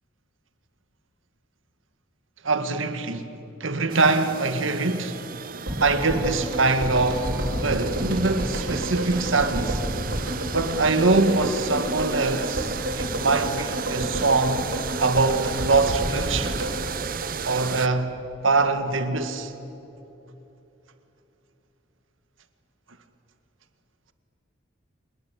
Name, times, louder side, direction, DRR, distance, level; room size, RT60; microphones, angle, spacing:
voice 1, 2.4-3.3 3.6-5.2 5.8-9.8 10.5-14.6 15.0-16.5 17.5-18.1 18.4-19.5, right 3 dB, 85° right, 1.8 m, -23 dB
sound 1, 3.9-17.9, right 7 dB, 45° right, 0.6 m, -35 dB
sound 2, 5.7-17.9 18.1-18.2, equal, 70° right, 6.2 m, -30 dB
27.0 x 20.5 x 8.6 m
head